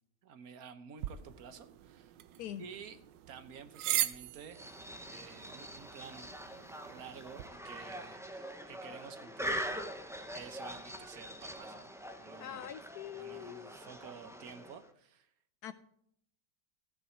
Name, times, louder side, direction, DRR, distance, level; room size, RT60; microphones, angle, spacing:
voice 1, 0.2-2.2 2.6-3.0 3.3-4.7 5.1-6.3 6.8-11.9 12.2-12.7 13.1-15.3, right 7 dB, 55° right, 10 dB, 1.3 m, -51 dB
sound 1, 1.0-7.5, right 12 dB, 75° right, 1.3 m, -40 dB
sound 2, 4.5-14.9, equal, 5° right, 0.5 m, -43 dB
voice 2, 12.4-13.7 15.6-15.7, left 10 dB, 70° left, 13 dB, 1.0 m, -43 dB
15.5 x 6.9 x 4.4 m, 0.69 s
omnidirectional pair, 2.0 m